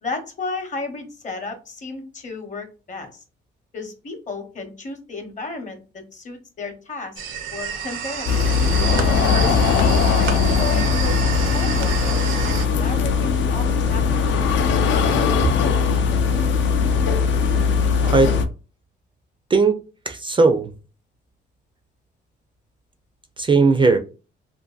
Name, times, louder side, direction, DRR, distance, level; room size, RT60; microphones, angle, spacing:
voice 1, 0.0-3.2 3.7-7.2 7.5-8.5 9.2-14.8, left 3 dB, 40° left, 5 dB, 0.8 m, -33 dB
sound 1, 7.2-12.7, right 7 dB, 80° right, 0.6 m, -29 dB
sound 2, 8.3-18.5, left 5 dB, 70° left, 0.5 m, -19 dB
voice 2, 20.1-20.7 23.4-24.0, right 4 dB, 25° right, 6 dB, 0.4 m, -17 dB
2.5 x 2.5 x 2.3 m, 0.33 s
cardioid pair, 90°, 20 cm